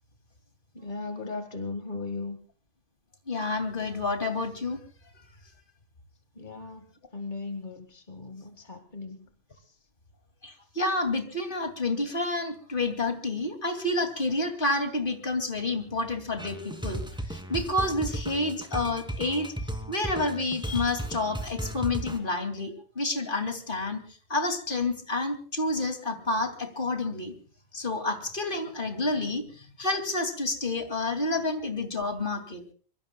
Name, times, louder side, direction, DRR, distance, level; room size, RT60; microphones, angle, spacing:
voice 1, 0.7-2.4 6.3-6.8 7.1-9.3 9.5-9.8, left 3 dB, 35° left, 7 dB, 0.7 m, -37 dB
voice 2, 3.3-4.8 10.4-17.0 17.3-19.5 19.9-24.0 24.3-27.3 27.7-32.6, left 2 dB, 15° left, 7 dB, 2.2 m, -29 dB
sound 1, 16.4-22.2, right 1 dB, ahead, 1.8 m, -35 dB
25.5 x 23.5 x 2.3 m, 0.41 s
omnidirectional pair, 3.9 m